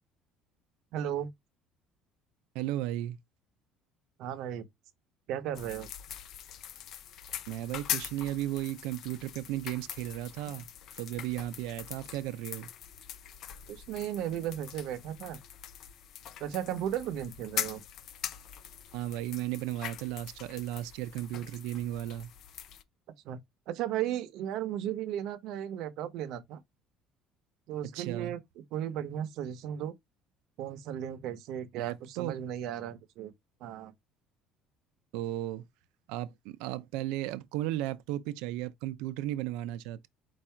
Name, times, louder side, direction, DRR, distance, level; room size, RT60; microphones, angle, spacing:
voice 1, 0.9-1.3 4.2-4.7 5.3-5.9 13.7-15.4 16.4-17.8 23.2-23.4 23.7-26.6 27.7-28.4 28.7-29.9 30.6-33.3 33.6-33.9, right 10 dB, 55° right, 0.7 m, -35 dB
voice 2, 2.5-3.2 7.5-10.7 11.0-12.7 18.9-22.3 27.9-28.4 31.7-32.4 35.1-35.6 36.1-40.1, right 14 dB, 90° right, 0.5 m, -35 dB
sound 1, 5.5-22.8, left 10 dB, 45° left, 0.4 m, -42 dB
4.7 x 2.5 x 4.3 m
cardioid pair, 180°, 0 cm